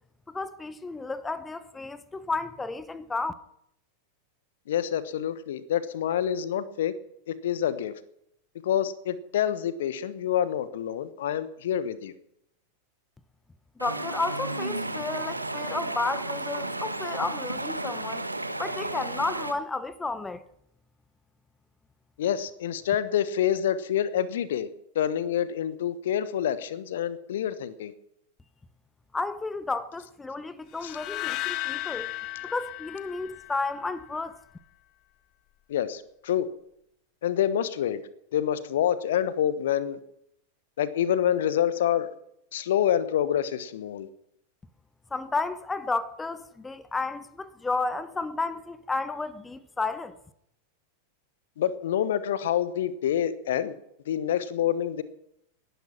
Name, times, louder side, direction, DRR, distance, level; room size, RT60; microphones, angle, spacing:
voice 1, 0.3-3.3 13.8-18.2 18.6-20.4 29.1-32.1 32.4-34.4 45.1-50.2, left 3 dB, 10° left, 0.9 m, -32 dB
voice 2, 4.7-6.9 7.3-7.9 8.6-12.1 22.2-24.7 24.9-27.9 30.8-30.9 35.7-36.5 37.2-38.0 38.3-40.0 40.8-42.1 42.5-44.1 51.6-53.7 54.1-55.0, left 10 dB, 60° left, 1.1 m, -27 dB
Stream, 13.8-19.5, right 2 dB, 85° right, 1.2 m, -33 dB
sound 1, 30.8-33.9, left 17 dB, 40° left, 1.0 m, -35 dB
19.0 x 11.5 x 6.0 m
figure-of-eight pair, 90°, 0 cm